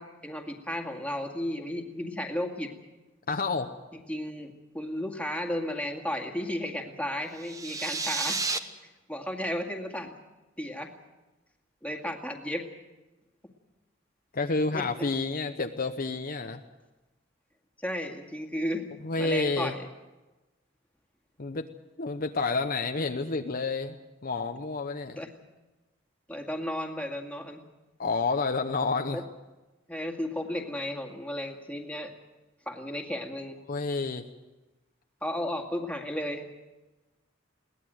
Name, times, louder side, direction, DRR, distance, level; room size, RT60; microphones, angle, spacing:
voice 1, 0.0-2.7 4.1-8.4 9.1-10.1 10.6-10.9 11.8-12.7 14.7-14.9 17.8-19.9 25.2-25.3 26.3-27.6 29.1-29.2 29.9-32.1 32.7-33.6 35.2-36.5, left 1 dB, 5° left, 3 dB, 2.1 m, -34 dB
voice 2, 3.3-3.7 14.3-16.6 19.0-19.8 21.4-21.7 22.0-24.0 24.2-25.2 28.0-29.2 33.7-34.3, left 3 dB, 45° left, 6 dB, 0.9 m, -29 dB
sound 1, 7.3-8.6, right 3 dB, 15° right, 1.1 m, -31 dB
22.0 x 18.0 x 7.7 m, 1.1 s
head